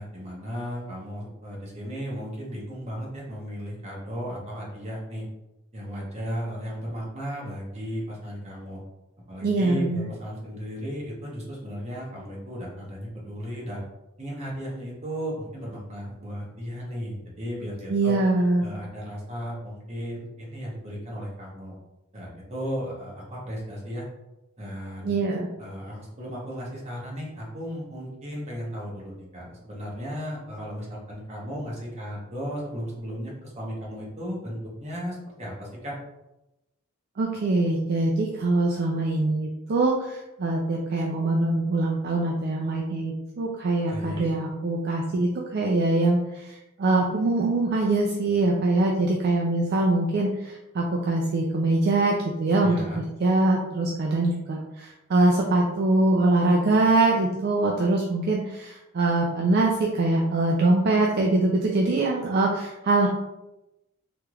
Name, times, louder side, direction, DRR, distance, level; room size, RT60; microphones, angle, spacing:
voice 1, 0.0-5.3 5.7-8.8 9.3-13.8 14.2-18.2 18.6-21.8 22.1-24.1 24.6-25.1 25.6-35.9 43.9-44.3 52.6-53.0, equal, 35° right, -4 dB, 0.9 m, -35 dB
voice 2, 9.4-10.1 17.9-18.6 25.0-25.5 37.2-63.1, right 2 dB, 50° right, -2 dB, 0.4 m, -23 dB
3.3 x 3.0 x 2.3 m, 0.95 s
head